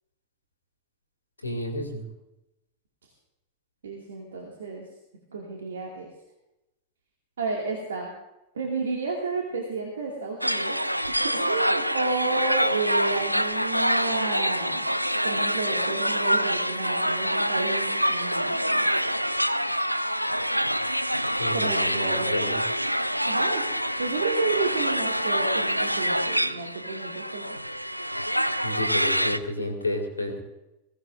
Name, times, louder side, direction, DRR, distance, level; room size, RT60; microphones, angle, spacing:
voice 1, 1.4-2.1 21.4-22.6 28.6-30.4, left 1 dB, 80° left, 3 dB, 2.5 m, -31 dB
voice 2, 3.8-4.8 5.3-6.1 7.4-8.1 8.5-10.7 11.2-14.9 15.2-18.9 21.5-22.4 23.3-23.6 24.0-27.6, right 4 dB, 65° right, 0 dB, 2.3 m, -31 dB
sound 1, 10.4-29.4, equal, 90° right, 0.5 m, -26 dB
21.5 x 16.5 x 2.6 m, 0.94 s
figure-of-eight pair, 90°, 0 cm